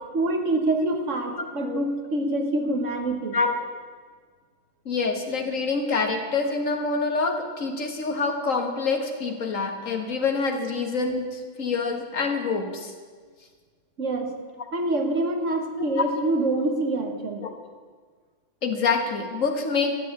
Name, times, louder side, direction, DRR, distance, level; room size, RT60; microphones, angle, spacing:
voice 1, 0.1-3.4 14.0-14.4 14.7-17.5, right 2 dB, 70° right, 4 dB, 1.9 m, -26 dB
voice 2, 1.4-1.8 3.3-3.5 4.9-12.9 15.8-15.9 17.4-17.6 18.6-20.0, left 4 dB, 85° left, 4 dB, 2.1 m, -26 dB
12.5 x 10.5 x 9.5 m, 1.5 s
omnidirectional pair, 1.3 m